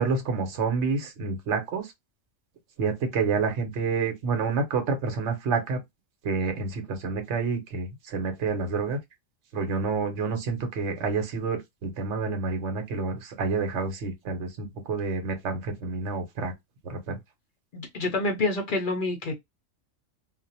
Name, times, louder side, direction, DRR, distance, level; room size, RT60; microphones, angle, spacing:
voice 1, 0.0-1.9 2.8-5.8 6.2-9.0 9.5-16.5 16.8-17.2, right 4 dB, 65° right, 1.0 m, -28 dB
voice 2, 17.7-19.3, left 2 dB, 55° left, 0.6 m, -27 dB
2.4 x 2.0 x 2.6 m
omnidirectional pair, 1.3 m